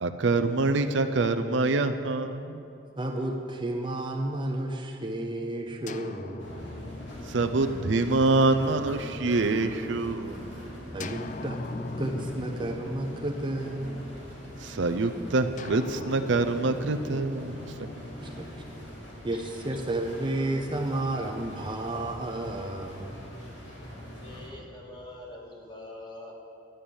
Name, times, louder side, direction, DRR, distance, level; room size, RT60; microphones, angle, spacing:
voice 1, 0.0-2.6 7.2-10.6 14.6-17.9, right 3 dB, 70° right, 8 dB, 0.6 m, -26 dB
voice 2, 3.0-6.5 10.9-11.6 12.0-14.1 18.2-18.5 19.2-23.1, right 1 dB, 25° right, 2 dB, 0.7 m, -32 dB
sound 1, 5.9-9.7 11.0-14.6 15.6-19.7, left 2 dB, 40° left, 0.5 m, -41 dB
sound 2, 6.4-24.5, equal, 85° left, 3.1 m, -42 dB
voice 3, 24.1-26.3, left 1 dB, 25° left, -2 dB, 2.0 m, -44 dB
11.0 x 9.1 x 7.0 m, 2.6 s
head